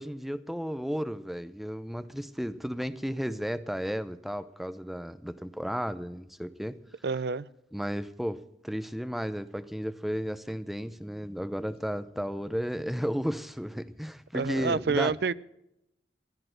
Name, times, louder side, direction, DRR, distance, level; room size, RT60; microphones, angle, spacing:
voice 1, 0.0-6.7 7.7-15.1, equal, ahead, 0.5 m, -33 dB
voice 2, 7.0-7.5 14.3-15.3, right 5 dB, 65° right, 0.5 m, -28 dB
15.5 x 10.0 x 6.4 m
head